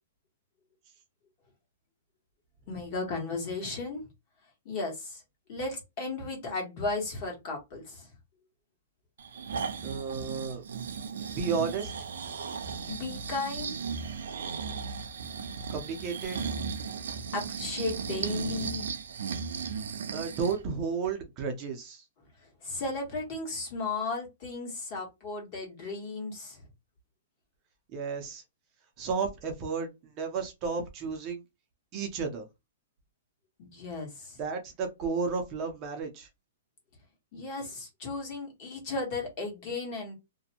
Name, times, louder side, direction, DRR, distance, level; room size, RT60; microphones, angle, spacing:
voice 1, 2.7-4.0 4.6-5.2 5.5-8.1 12.9-13.8 17.0-18.9 22.6-26.6 33.6-34.4 37.3-40.1, left 3 dB, 40° left, 1.2 m, -35 dB
Breathing, 9.2-20.6 21.0-21.1, right 6 dB, 80° right, 0.4 m, -36 dB
voice 2, 9.8-10.6 11.3-11.9 15.7-16.4 20.1-22.0 27.9-28.4 29.0-29.9 30.2-31.4 31.9-32.4 34.4-36.3, right 5 dB, 30° right, 0.6 m, -32 dB
2.5 x 2.2 x 2.8 m
hypercardioid pair, 160°, 0 cm